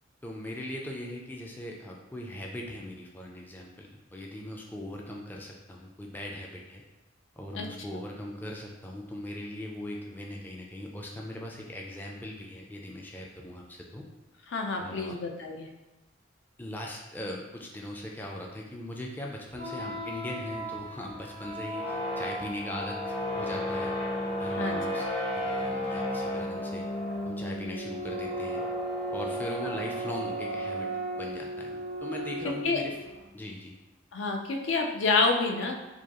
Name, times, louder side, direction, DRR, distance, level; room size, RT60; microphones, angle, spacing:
voice 1, 0.2-6.8 7.4-14.0 14.8-15.2 16.6-24.0 24.4-25.1 25.3-26.9 27.3-28.6 29.1-30.9 31.1-33.0 33.3-33.7, left 1 dB, 10° left, -1 dB, 0.4 m, -39 dB
voice 2, 14.5-15.7 24.6-24.8 32.6-32.8 34.1-35.8, left 3 dB, 70° left, 2 dB, 0.5 m, -28 dB
sound 1, 19.5-33.3, equal, 30° left, 0.7 m, -34 dB
4.8 x 2.3 x 2.9 m, 1.1 s
head